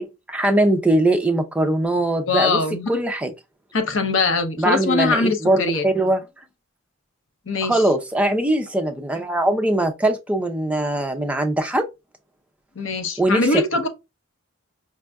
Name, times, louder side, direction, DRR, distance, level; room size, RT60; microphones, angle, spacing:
voice 1, 0.0-2.6 2.9-3.3 4.6-6.2 7.6-11.9 13.2-13.6, right 1 dB, 5° right, 0.4 m, -21 dB
voice 2, 2.3-2.9 3.7-5.8 7.5-7.8 12.8-13.9, left 3 dB, 60° left, 0.7 m, -22 dB
5.2 x 2.4 x 2.2 m
head